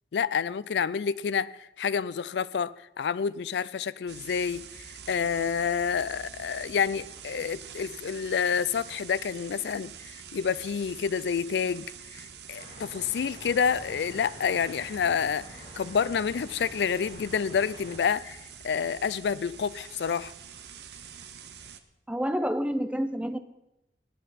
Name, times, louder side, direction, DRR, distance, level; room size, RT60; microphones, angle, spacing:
voice 1, 0.1-4.7 5.1-11.9 12.1-18.4 18.6-20.3, left 6 dB, 75° left, 0.4 m, -28 dB
sound 1, 4.1-21.8, right 7 dB, 75° right, 0.8 m, -46 dB
sound 2, 12.6-18.0, left 1 dB, 60° left, 3.4 m, -48 dB
voice 2, 22.1-23.4, equal, 5° right, 0.6 m, -28 dB
18.5 x 9.2 x 4.2 m
head